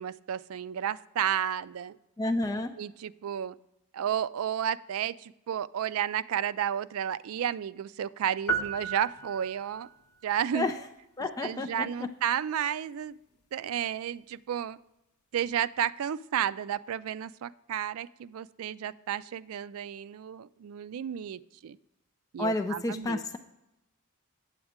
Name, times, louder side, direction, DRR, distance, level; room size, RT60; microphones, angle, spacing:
voice 1, 0.0-2.0 2.8-3.6 3.9-9.9 10.2-10.7 11.4-13.2 13.5-14.8 15.3-21.8 22.3-23.2, right 9 dB, 70° right, 16 dB, 0.3 m, -32 dB
voice 2, 2.2-2.8 10.5-10.7 11.2-12.1 22.4-23.4, left 2 dB, 15° left, 5 dB, 0.4 m, -30 dB
sound 1, 8.5-9.9, right 5 dB, 90° left, 0.7 m, -33 dB
8.4 x 7.9 x 3.6 m, 0.89 s
head